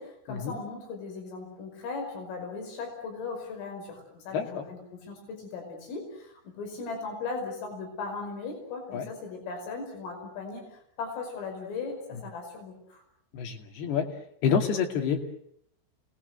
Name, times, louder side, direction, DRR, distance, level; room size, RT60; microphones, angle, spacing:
voice 1, 0.0-13.0, left 4 dB, 85° left, 4 dB, 7.9 m, -38 dB
voice 2, 4.3-4.6 8.9-9.1 13.3-14.1 14.4-15.4, left 7 dB, 60° left, 5 dB, 4.2 m, -28 dB
30.0 x 19.5 x 8.1 m, 0.70 s
omnidirectional pair, 5.7 m